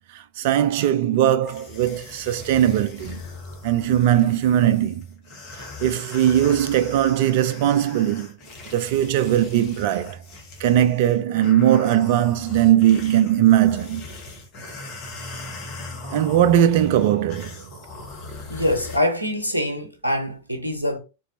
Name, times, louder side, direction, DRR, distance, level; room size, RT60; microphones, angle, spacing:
voice 1, 0.1-3.2 3.6-5.0 5.5-8.3 8.7-10.2 10.6-14.1 16.1-17.6, right 11 dB, 50° right, 0.4 m, -19 dB
sound 1, 1.4-19.0, left 3 dB, 40° left, 1.3 m, -39 dB
voice 2, 18.5-21.0, left 1 dB, 85° right, 0.8 m, -24 dB
4.0 x 3.1 x 2.7 m
figure-of-eight pair, 90°, 0 cm